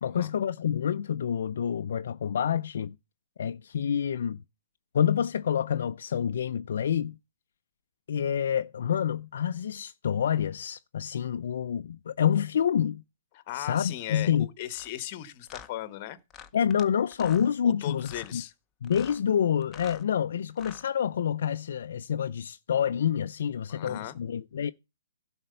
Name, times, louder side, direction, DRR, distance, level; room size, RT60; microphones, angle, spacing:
voice 1, 0.0-3.0 3.4-4.4 4.9-7.2 8.1-13.0 13.5-14.5 16.5-18.4 18.8-24.7, left 8 dB, 65° left, 0.4 m, -27 dB
voice 2, 13.3-16.2 17.6-18.5 23.7-24.1, left 14 dB, 35° left, 1.1 m, -37 dB
sound 1, 14.7-14.9 15.5-15.7 16.3-16.9 17.1-17.5 18.0-18.3 18.8-19.2 19.6-20.0 20.5-20.9, left 8 dB, 15° left, 0.7 m, -46 dB
11.5 x 4.2 x 6.7 m
hypercardioid pair, 155°, 0 cm